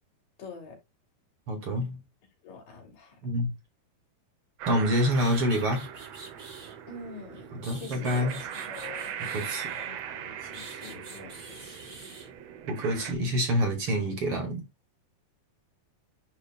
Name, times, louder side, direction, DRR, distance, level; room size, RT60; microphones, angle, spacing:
voice 1, 0.4-0.8 2.4-3.2 6.9-9.1 9.7-12.1, left 4 dB, 70° left, 4.3 m, -46 dB
voice 2, 1.5-2.0 3.2-3.6 4.7-5.9 7.5-8.5 9.2-9.7 12.7-14.6, equal, 40° right, 2.6 m, -27 dB
sound 1, 4.6-13.1, right 9 dB, 80° right, 1.4 m, -40 dB
sound 2, 5.1-6.7 7.3-10.0 10.5-12.3, right 2 dB, 20° right, 1.4 m, -47 dB
10.5 x 4.9 x 2.3 m
omnidirectional pair, 4.2 m